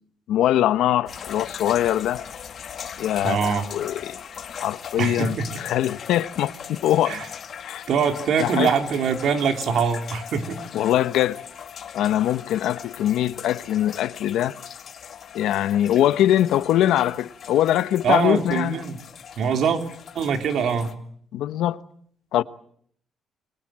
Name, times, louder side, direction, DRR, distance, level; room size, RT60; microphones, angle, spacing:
voice 1, 0.3-2.2 3.0-4.2 4.6-7.2 7.6-7.9 8.4-8.7 10.7-11.4 11.9-14.6 15.3-18.8 21.3-21.8 22.3-22.4, left 12 dB, 80° left, 1.1 m, -22 dB
sound 1, 1.1-20.9, left 8 dB, 45° left, 1.9 m, -39 dB
voice 2, 3.2-3.6 5.0-5.5 7.1-7.3 7.9-10.6 18.0-19.0 19.4-19.8 20.2-20.9, right 6 dB, 60° right, 3.6 m, -23 dB
29.5 x 24.0 x 7.6 m
cardioid pair, 150°, 0 cm